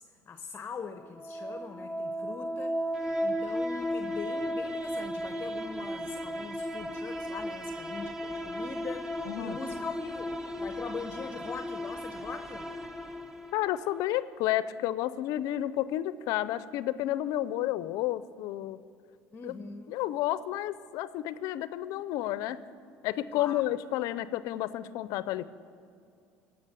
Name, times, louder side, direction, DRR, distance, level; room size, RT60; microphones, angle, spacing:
voice 1, 0.0-2.8 3.2-12.7 19.3-20.0 23.3-23.6, left 5 dB, 30° left, 8 dB, 0.7 m, -42 dB
sound 1, 1.0-14.0, equal, 10° right, 1.0 m, -35 dB
voice 2, 9.3-9.6 13.5-18.8 19.4-19.5 19.9-22.6 23.0-25.5, left 13 dB, 70° left, 15 dB, 0.5 m, -31 dB
16.0 x 6.0 x 8.0 m, 2.3 s
supercardioid pair, 80°, 6 cm